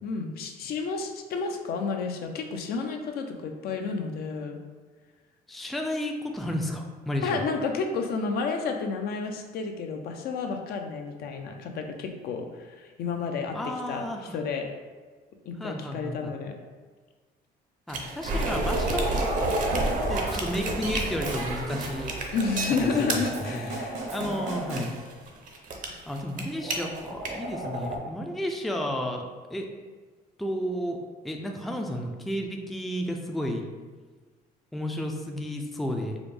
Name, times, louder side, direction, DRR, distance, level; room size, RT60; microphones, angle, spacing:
voice 1, 0.0-4.6 7.2-13.6 13.9-14.7 15.5-16.5 22.3-24.0 24.2-24.4, left 4 dB, 65° left, 4 dB, 0.5 m, -31 dB
voice 2, 5.5-7.4 13.5-14.4 15.6-16.3 17.9-19.1 19.7-22.1 22.8-23.2 23.5-23.8 24.1-24.9 26.1-29.2 29.5-29.7 30.4-31.0 31.2-33.6 34.7-36.2, equal, ahead, 2 dB, 0.3 m, -32 dB
sound 1, 17.9-28.0, right 2 dB, 50° right, 0.6 m, -30 dB
sound 2, 19.1-25.3, right 2 dB, 70° right, 1.0 m, -41 dB
4.9 x 2.0 x 3.4 m, 1.4 s
cardioid pair, 110°, 17 cm